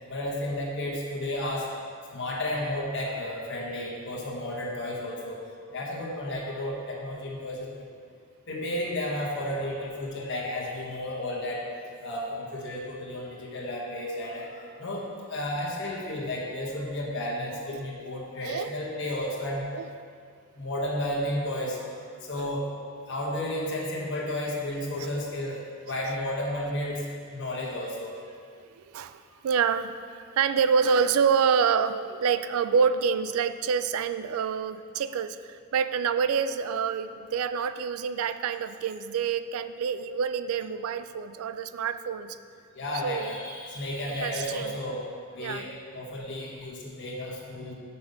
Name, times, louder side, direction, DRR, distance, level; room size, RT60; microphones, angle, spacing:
voice 1, 0.1-1.7 2.1-5.4 5.7-7.9 8.5-11.6 12.0-14.4 14.8-19.6 20.6-21.8 22.3-22.7 23.1-25.6 25.8-27.0 27.3-28.1 42.7-45.1 45.3-47.7, left 1 dB, 55° left, -4 dB, 1.3 m, -32 dB
voice 2, 18.4-18.7 19.7-19.8 22.4-22.5 28.8-42.4 43.0-43.3 44.2-44.7 45.4-45.7, right 6 dB, 80° right, 12 dB, 0.3 m, -27 dB
5.7 x 5.5 x 6.7 m, 2.2 s
head